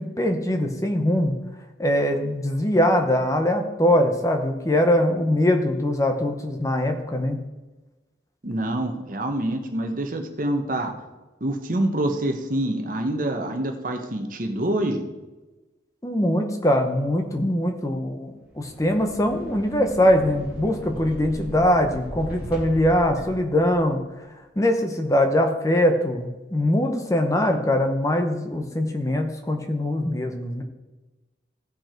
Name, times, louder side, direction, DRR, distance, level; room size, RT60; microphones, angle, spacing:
voice 1, 0.0-1.4 1.8-7.4 16.0-24.0 24.6-30.6, left 1 dB, 15° left, 5 dB, 0.8 m, -22 dB
voice 2, 8.4-10.9 11.4-15.0, right 1 dB, 45° right, 5 dB, 1.0 m, -26 dB
sound 1, 18.4-24.1, equal, 5° right, 2.2 m, -38 dB
15.5 x 5.3 x 4.4 m, 1.1 s
head